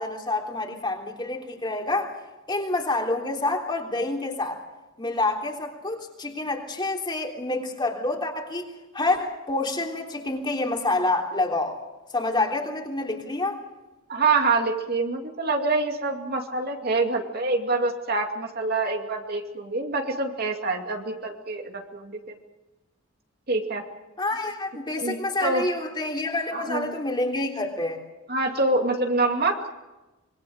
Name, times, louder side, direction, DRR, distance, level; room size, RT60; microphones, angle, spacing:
voice 1, 0.0-2.2 2.5-4.6 5.0-8.7 8.9-11.8 12.1-13.6 24.2-28.0, left 2 dB, 20° left, 1 dB, 3.5 m, -27 dB
voice 2, 14.1-22.2 23.5-23.8 25.0-25.6 26.5-26.9 28.3-29.7, right 3 dB, 50° right, 3 dB, 2.5 m, -26 dB
25.5 x 23.0 x 6.6 m, 1.1 s
head